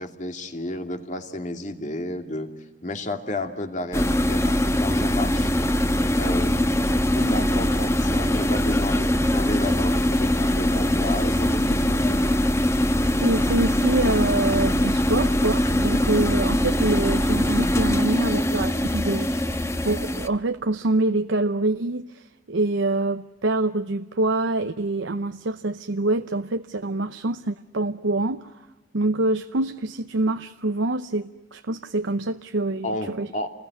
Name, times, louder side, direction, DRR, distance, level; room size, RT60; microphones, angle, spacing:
voice 1, 0.0-2.5 2.8-5.5 6.2-12.4 32.8-33.5, left 1 dB, 40° left, 2.6 m, -32 dB
sound 1, 3.9-20.3, left 1 dB, 15° left, 1.2 m, -22 dB
voice 2, 13.2-19.6 19.8-28.6 28.9-33.3, right 2 dB, 90° right, 0.8 m, -25 dB
29.5 x 21.0 x 9.5 m
head